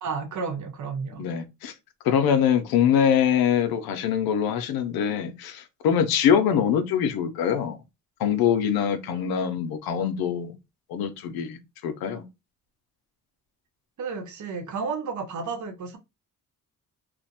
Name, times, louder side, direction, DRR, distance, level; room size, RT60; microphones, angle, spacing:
voice 1, 0.0-1.2 14.0-16.0, right 5 dB, 55° right, 0.7 m, -32 dB
voice 2, 1.2-1.7 2.0-7.8 8.2-10.5 10.9-11.6 11.8-12.2, left 8 dB, 85° left, 0.5 m, -23 dB
2.5 x 2.0 x 2.7 m
cardioid pair, 80°, 36 cm